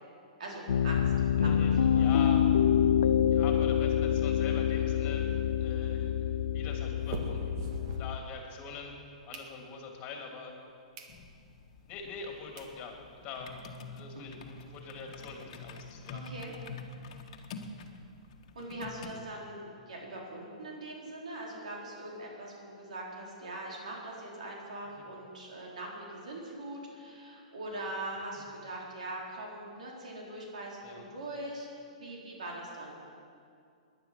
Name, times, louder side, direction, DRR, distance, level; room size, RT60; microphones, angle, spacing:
voice 1, 0.4-1.5 1.8-2.1 16.1-16.5 18.5-31.7 32.0-32.9, right 1 dB, 75° right, -3 dB, 4.1 m, -42 dB
Piano, 0.7-8.2, left 9 dB, 75° left, 0.4 m, -26 dB
voice 2, 1.2-2.5 3.3-5.3 5.6-6.1 6.5-7.4 7.9-8.9 9.2-10.5 11.9-13.5 13.9-16.2 19.0-19.2 28.4-28.5 30.8-31.1, left 5 dB, 35° left, 1 dB, 2.9 m, -43 dB
sound 1, 4.7-8.7 9.1-10.0 10.5-10.6 10.9-11.2 11.6-11.7 12.3-12.4 12.6-12.8 13.2-13.3 13.5-13.6 13.9-14.0 14.3-15.4, right 4 dB, 50° right, 1.8 m, -45 dB
sound 2, 11.1-19.1, left 4 dB, 55° left, 1.5 m, -47 dB
18.5 x 11.0 x 6.0 m, 2.4 s
hypercardioid pair, 130°, 4 cm